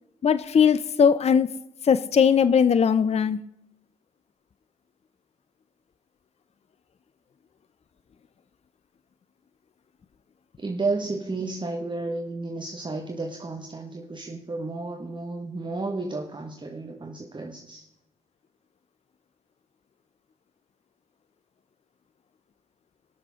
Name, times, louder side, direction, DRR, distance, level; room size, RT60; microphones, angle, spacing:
voice 1, 0.2-1.5 1.8-3.4, left 7 dB, 40° left, 0.6 m, -19 dB
voice 2, 10.6-17.9, right 3 dB, 30° right, 1.6 m, -32 dB
19.5 x 6.8 x 3.7 m
hypercardioid pair, 50°, 16 cm